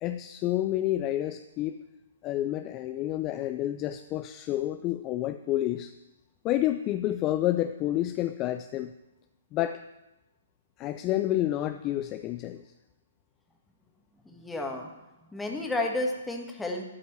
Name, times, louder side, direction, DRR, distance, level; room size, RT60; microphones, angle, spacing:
voice 1, 0.0-1.8 2.2-5.9 6.4-8.9 9.5-9.8 10.8-12.6, left 13 dB, 30° left, 9 dB, 0.5 m, -29 dB
voice 2, 14.3-14.9 15.3-16.8, left 2 dB, 5° left, 1 dB, 1.7 m, -31 dB
12.5 x 5.3 x 8.8 m, 0.99 s
figure-of-eight pair, 125°, 0 cm